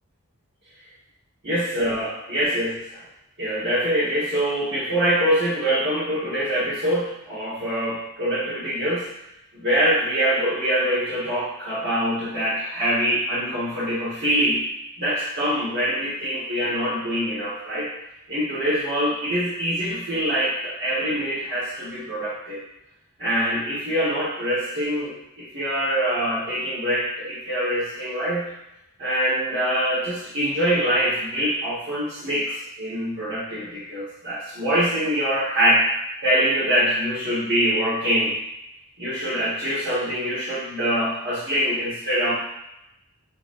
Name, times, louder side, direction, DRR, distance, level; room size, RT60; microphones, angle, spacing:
voice 1, 1.4-3.0 3.4-9.1 9.5-14.6 15.0-17.9 18.3-22.6 23.2-28.5 29.0-35.9 36.2-38.4 39.0-42.3, equal, 50° right, -11 dB, 1.3 m, -24 dB
5.3 x 3.1 x 2.5 m, 0.84 s
head